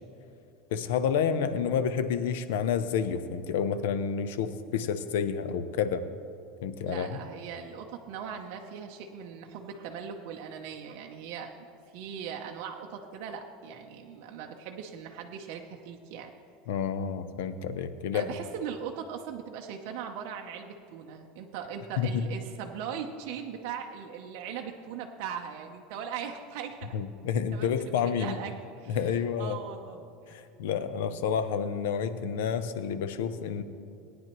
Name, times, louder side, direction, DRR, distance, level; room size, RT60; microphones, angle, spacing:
voice 1, 0.7-6.1 6.6-7.1 16.7-18.3 22.0-22.3 26.9-28.4 28.9-29.6 30.3-33.6, left 7 dB, 85° left, 12 dB, 0.6 m, -29 dB
voice 2, 6.8-11.7 11.9-16.3 18.1-26.9 27.3-30.1, right 7 dB, 55° right, 2 dB, 0.7 m, -39 dB
18.0 x 9.6 x 3.0 m, 2.6 s
supercardioid pair, 165°, 0 cm